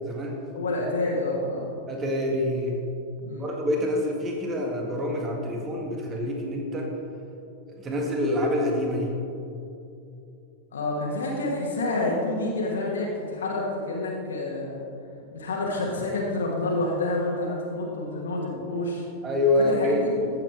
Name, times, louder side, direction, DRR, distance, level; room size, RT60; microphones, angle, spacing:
voice 1, 0.0-0.4 1.9-2.8 3.4-6.9 7.7-9.1 19.2-20.1, left 1 dB, 25° right, 1 dB, 1.7 m, -26 dB
voice 2, 0.5-1.7 3.2-3.5 10.7-14.8 15.3-19.0 19.7-20.1, left 2 dB, 65° left, -3 dB, 1.4 m, -28 dB
15.0 x 7.6 x 3.5 m, 2.7 s
figure-of-eight pair, 90°, 0 cm